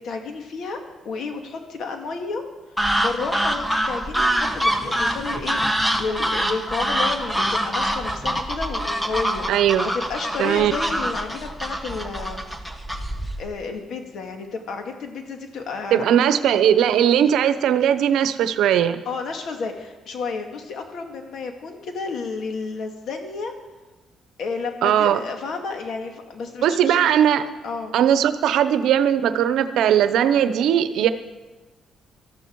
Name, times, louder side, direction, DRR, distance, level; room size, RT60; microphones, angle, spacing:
voice 1, 0.0-2.4 3.0-9.5 9.9-12.4 13.4-16.4 19.1-23.5 24.4-27.0 27.6-28.0, left 4 dB, 65° left, 4 dB, 2.1 m, -31 dB
sound 1, 2.8-13.5, equal, 5° left, 1.4 m, -25 dB
voice 2, 9.5-9.9 10.4-10.7 15.9-19.0 24.8-25.2 26.6-27.5 27.9-31.1, right 9 dB, 80° right, 12 dB, 0.8 m, -19 dB
18.5 x 13.0 x 4.7 m, 1.2 s
cardioid pair, 90°, 0 cm